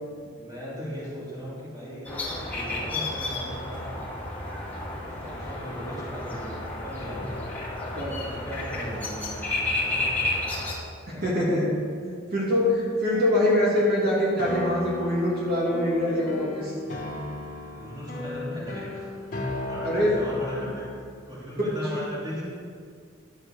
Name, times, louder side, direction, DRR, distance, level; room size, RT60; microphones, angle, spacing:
voice 1, 0.4-4.1 5.2-7.3 8.1-9.5 9.8-10.4 11.1-11.3 17.7-19.1 19.5-20.9 21.3-22.4, equal, 20° right, -8 dB, 3.1 m, -37 dB
sound 1, 2.0-10.7, left 2 dB, 5° left, 2.6 m, -31 dB
sound 2, 4.9-5.9 7.1-10.4 13.1-21.0, left 2 dB, 40° left, 1.9 m, -38 dB
voice 2, 11.1-11.7 12.0-16.8 19.8-20.1 20.6-20.7 21.6-22.0, left 1 dB, 45° right, -6 dB, 3.0 m, -24 dB
12.0 x 7.6 x 6.7 m, 2.1 s
head